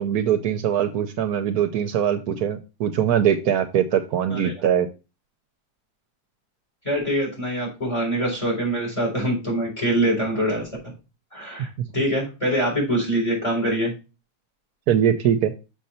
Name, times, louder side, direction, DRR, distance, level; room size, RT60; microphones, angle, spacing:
voice 1, 0.0-4.9 14.9-15.5, right 9 dB, 75° right, 8 dB, 1.1 m, -22 dB
voice 2, 6.8-10.7 11.3-13.9, right 1 dB, 20° left, -2 dB, 4.0 m, -24 dB
6.5 x 5.3 x 4.2 m, 0.30 s
omnidirectional pair, 1.7 m